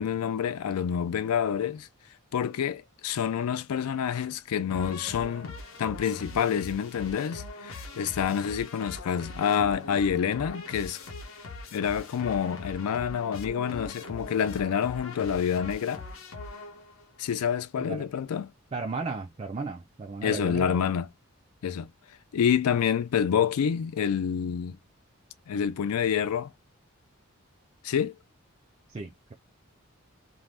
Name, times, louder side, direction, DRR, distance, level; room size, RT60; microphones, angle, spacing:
voice 1, 0.0-1.9 2.3-11.0 11.7-16.0 17.2-18.5 20.2-21.1 21.6-21.9 22.3-24.8 25.5-26.5 27.8-28.1, left 8 dB, 85° left, 0.4 m, -28 dB
sound 1, 4.7-17.1, left 2 dB, 65° left, 0.7 m, -42 dB
voice 2, 18.7-20.8 28.9-29.3, right 4 dB, 30° right, 0.3 m, -35 dB
2.6 x 2.1 x 3.2 m
head